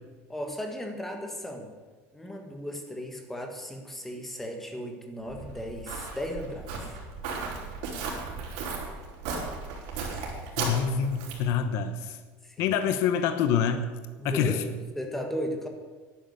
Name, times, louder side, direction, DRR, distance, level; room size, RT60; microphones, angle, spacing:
voice 1, 0.3-1.7 2.1-6.8 12.4-12.6 14.2-14.6 14.9-15.7, equal, 5° left, 3 dB, 1.5 m, -36 dB
Walk footsteps, 5.3-11.5, right 4 dB, 75° right, 4.7 m, -35 dB
voice 2, 10.6-12.2 12.6-13.8 14.2-14.6, left 7 dB, 55° left, 9 dB, 1.0 m, -26 dB
11.5 x 10.5 x 8.2 m, 1.4 s
cardioid pair, 175°, 6 cm